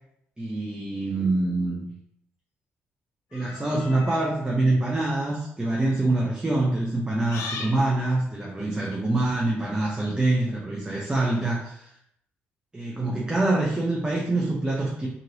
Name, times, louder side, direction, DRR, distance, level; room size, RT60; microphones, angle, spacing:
voice 1, 0.4-1.8 3.3-11.9 12.7-15.1, right 2 dB, 15° right, -3 dB, 0.6 m, -25 dB
sound 1, 3.3-4.3 5.1-5.4 7.3-7.8, left 5 dB, 85° left, 0.4 m, -37 dB
2.9 x 2.6 x 2.7 m, 0.75 s
supercardioid pair, 70°, 5 cm